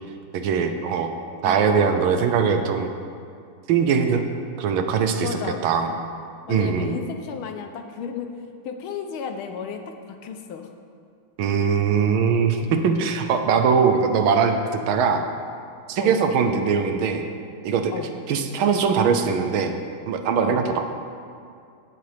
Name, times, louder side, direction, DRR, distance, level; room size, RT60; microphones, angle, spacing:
voice 1, 0.3-1.1 1.4-2.9 3.7-4.3 4.6-5.3 5.6-5.9 6.5-6.9 11.4-15.2 15.9-17.2 17.6-17.9 18.3-19.7 20.1-20.8, right 6 dB, 75° right, 6 dB, 1.4 m, -21 dB
voice 2, 5.2-5.7 6.5-8.3 8.6-9.8 10.2-10.7 16.0-16.2 17.9-18.1 20.4-20.6, left 7 dB, 75° left, 6 dB, 1.5 m, -33 dB
16.5 x 6.6 x 3.4 m, 2.3 s
omnidirectional pair, 2.4 m